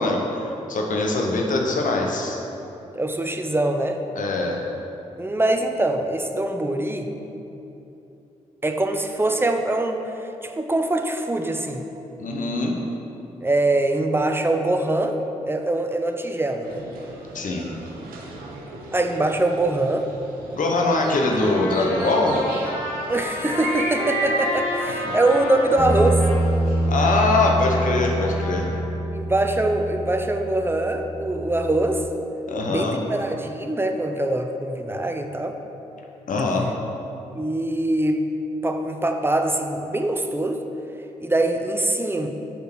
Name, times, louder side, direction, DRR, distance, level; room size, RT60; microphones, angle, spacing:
voice 1, 0.0-2.4 4.2-4.6 12.2-12.8 17.3-17.7 20.5-22.4 25.1-25.2 26.9-28.7 32.5-33.0 36.3-36.7, left 2 dB, 60° left, 1 dB, 0.9 m, -22 dB
voice 2, 3.0-4.0 5.2-7.1 8.6-10.0 10.4-11.8 13.4-15.2 15.5-16.8 18.9-20.1 23.1-26.2 29.1-32.0 32.7-35.6 37.3-38.2 38.6-40.6 41.2-42.3, right 2 dB, 15° right, 5 dB, 0.7 m, -23 dB
sound 1, 16.6-27.2, right 3 dB, 80° right, 0.8 m, -35 dB
Trumpet, 20.9-26.4 26.9-28.9, left 2 dB, 85° left, 1.0 m, -31 dB
Bass guitar, 25.8-32.0, right 1 dB, 35° left, 1.6 m, -26 dB
5.2 x 4.5 x 6.1 m, 2.9 s
supercardioid pair, 45°, 15 cm